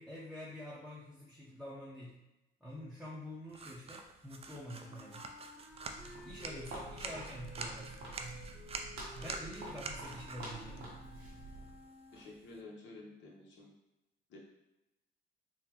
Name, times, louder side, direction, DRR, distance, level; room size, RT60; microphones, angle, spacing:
voice 1, 0.0-2.2 2.6-5.2 6.2-8.0 9.1-10.9, equal, ahead, -8 dB, 0.7 m, -47 dB
sound 1, 3.5-12.6, right 4 dB, 30° right, 0.4 m, -47 dB
Wind instrument woodwind instrument, 4.7-12.4, left 2 dB, 30° left, 1.0 m, -55 dB
Walk footsteps, 5.7-11.8, right 2 dB, 85° right, 1.0 m, -48 dB
voice 2, 12.1-13.7 14.3-14.4, left 2 dB, 70° left, -2 dB, 0.9 m, -51 dB
3.8 x 2.1 x 2.9 m, 0.94 s
cardioid pair, 90°, 20 cm